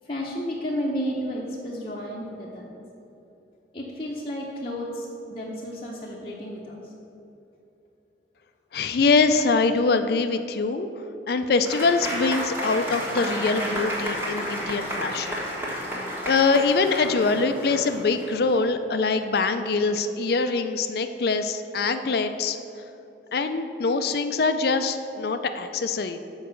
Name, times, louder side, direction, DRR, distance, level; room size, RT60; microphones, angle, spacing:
voice 1, 0.0-2.8 3.7-6.9, equal, 30° left, -5 dB, 0.7 m, -32 dB
voice 2, 8.7-10.9 11.3-15.9 16.2-22.6 23.3-26.2, left 4 dB, 55° left, 9 dB, 0.4 m, -24 dB
Applause / Crowd, 11.6-18.5, equal, 10° right, 1.3 m, -31 dB
7.6 x 4.8 x 6.8 m, 2.9 s
head